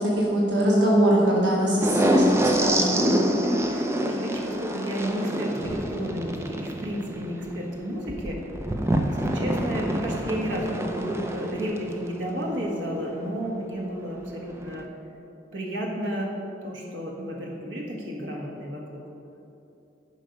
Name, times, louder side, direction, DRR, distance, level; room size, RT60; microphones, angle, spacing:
voice 1, 0.0-3.1, right 1 dB, 70° right, -3 dB, 1.4 m, -22 dB
sound 1, 1.8-12.3 14.6-14.8, right 1 dB, 15° right, 0.5 m, -26 dB
voice 2, 3.4-8.4 9.0-14.9 15.5-16.3 16.6-19.0, equal, 85° right, -2 dB, 1.7 m, -32 dB
10.0 x 5.5 x 5.3 m, 2.8 s
head